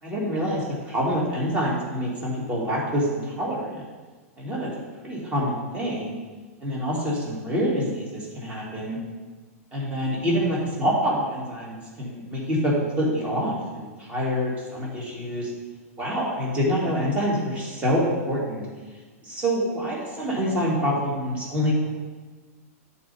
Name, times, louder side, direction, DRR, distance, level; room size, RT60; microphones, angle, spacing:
voice 1, 0.0-3.8 4.4-4.7 5.0-6.2 6.6-9.0 9.7-15.5 16.0-18.7 19.2-21.9, equal, 15° right, -4 dB, 2.0 m, -26 dB
9.1 x 4.2 x 5.4 m, 1.3 s
supercardioid pair, 150°, 8 cm